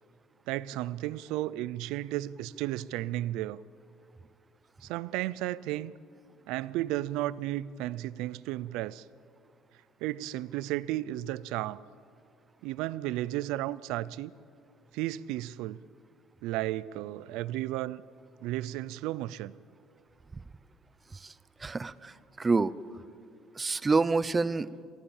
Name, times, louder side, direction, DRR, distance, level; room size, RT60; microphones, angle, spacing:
voice 1, 0.5-3.6 4.8-5.9 6.5-9.0 10.0-11.8 12.6-14.3 14.9-15.8 16.4-18.0 18.4-19.5, right 15 dB, 80° right, 0.5 m, -33 dB
voice 2, 21.6-22.7 23.6-24.7, right 4 dB, 15° right, 0.6 m, -27 dB
26.5 x 19.0 x 7.2 m
cardioid pair, 145°, 0 cm